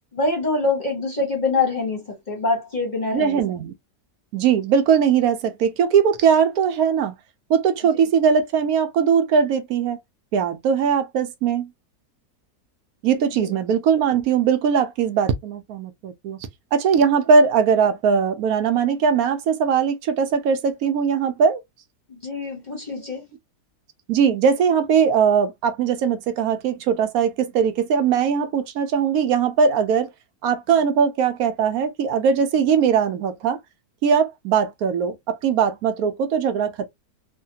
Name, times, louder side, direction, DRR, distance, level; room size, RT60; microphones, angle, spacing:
voice 1, 0.1-3.4 13.3-13.5 22.1-23.3, left 3 dB, 35° left, 0.8 m, -25 dB
voice 2, 3.1-3.7 4.3-7.2 7.5-10.0 10.3-11.7 13.0-21.6 22.9-23.0 24.1-30.1 30.4-33.6 34.0-36.9, right 6 dB, 70° right, 1.0 m, -20 dB
3.2 x 2.2 x 2.7 m
omnidirectional pair, 1.7 m